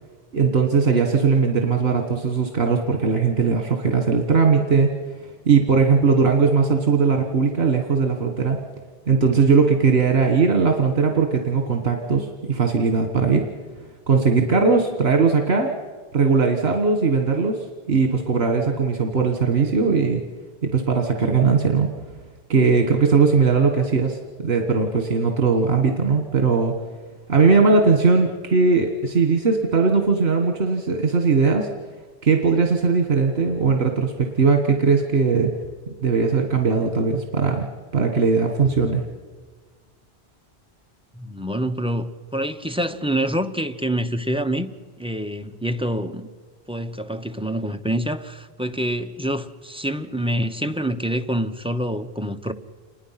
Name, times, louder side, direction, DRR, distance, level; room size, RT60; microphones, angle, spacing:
voice 1, 0.3-4.9 5.4-8.6 9.1-13.5 14.1-15.7 16.1-20.2 20.6-21.9 22.5-26.7 27.3-31.7 32.2-35.5 36.0-37.7 37.9-39.0, right 5 dB, 75° right, 1.7 m, -19 dB
voice 2, 41.1-44.7 45.0-46.3 46.7-52.5, equal, 5° right, 0.7 m, -26 dB
28.0 x 20.5 x 5.8 m
omnidirectional pair, 1.1 m